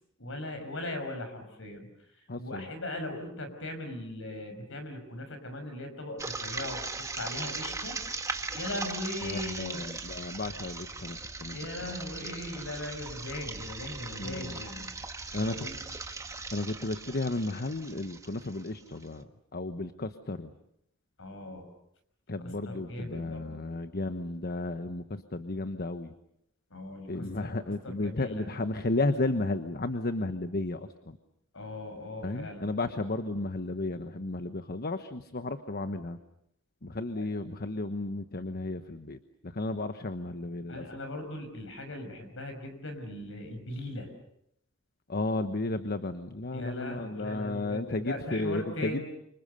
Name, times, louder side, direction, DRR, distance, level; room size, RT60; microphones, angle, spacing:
voice 1, 0.2-1.9 2.4-6.9 7.2-8.0 8.5-9.8 11.5-14.9 15.4-15.8 21.2-21.7 22.7-23.6 26.7-27.6 27.8-28.5 31.5-32.7 37.2-37.3 40.7-44.1 46.5-49.0, left 1 dB, 65° left, 7 dB, 5.9 m, -39 dB
voice 2, 2.3-2.7 9.2-11.6 11.8-11.9 14.2-14.6 15.3-15.6 16.5-20.5 22.3-26.1 27.1-31.2 32.2-36.2 36.8-41.0 45.1-49.0, left 2 dB, 45° left, 9 dB, 1.1 m, -33 dB
sound 1, 6.2-19.0, right 3 dB, 15° right, 1.4 m, -39 dB
29.5 x 26.0 x 6.8 m, 0.76 s
head